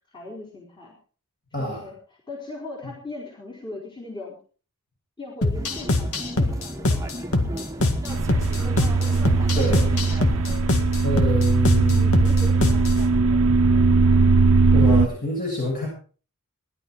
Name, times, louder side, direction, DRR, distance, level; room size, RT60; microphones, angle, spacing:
voice 1, 0.1-1.0 1.6-1.9 2.3-4.4 5.2-7.8 10.6-10.9 11.9-14.2 14.7-15.2, left 2 dB, 20° left, -3 dB, 4.1 m, -40 dB
voice 2, 1.5-1.9 9.5-9.9 11.0-12.1 14.7-15.9, left 1 dB, 45° left, -3 dB, 7.5 m, -27 dB
sound 1, 5.4-13.0, left 2 dB, 70° left, 1.9 m, -24 dB
sound 2, 5.5-10.6, equal, 15° right, 1.2 m, -35 dB
sound 3, 8.1-15.1, right 4 dB, 70° right, 0.8 m, -19 dB
19.0 x 11.5 x 4.7 m, 0.40 s
head